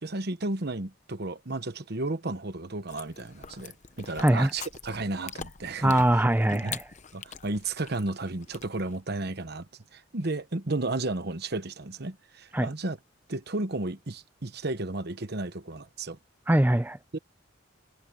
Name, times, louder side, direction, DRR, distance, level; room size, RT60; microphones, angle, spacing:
voice 1, 0.0-6.0 6.5-6.7 7.1-9.7 9.9-13.0 13.3-16.2 17.1-17.2, right 2 dB, 50° right, 1.1 m, -33 dB
Chewing mastication, 2.9-9.0, left 7 dB, 35° left, 0.8 m, -44 dB
voice 2, 4.2-4.5 5.8-6.8 12.5-12.7 16.5-17.0, right 1 dB, 10° right, 0.5 m, -22 dB
head